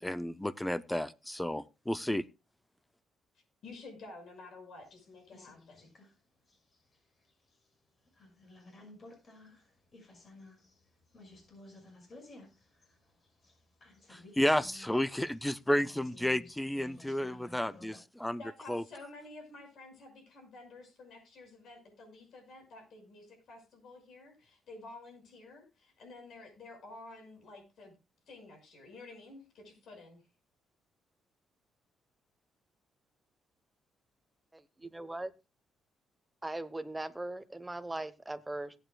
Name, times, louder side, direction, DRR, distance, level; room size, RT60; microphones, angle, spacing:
voice 1, 0.0-2.2 14.1-18.4 18.7-18.8, left 1 dB, 5° left, 17 dB, 0.4 m, -32 dB
voice 2, 3.6-5.9 18.4-27.9 28.3-30.2, left 2 dB, 65° left, 4 dB, 5.9 m, -51 dB
sound 1, 4.8-6.1 6.5-7.6 8.1-18.0, left 2 dB, 45° left, 5.5 m, -55 dB
voice 3, 34.5-35.3 36.4-38.7, right 2 dB, 10° right, 12 dB, 0.9 m, -39 dB
17.5 x 8.8 x 2.3 m, 0.28 s
cardioid pair, 90°, 0 cm